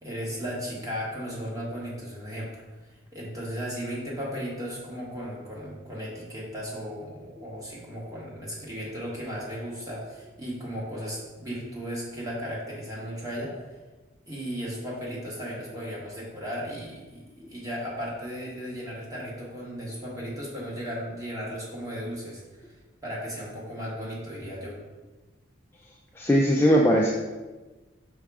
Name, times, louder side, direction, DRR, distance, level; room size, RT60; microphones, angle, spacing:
voice 1, 0.0-2.5 3.1-13.6 14.3-22.8 23.0-24.8, equal, 15° right, -5 dB, 1.4 m, -35 dB
voice 2, 26.2-27.1, equal, 10° left, -1 dB, 0.3 m, -19 dB
5.6 x 3.6 x 4.7 m, 1.2 s
head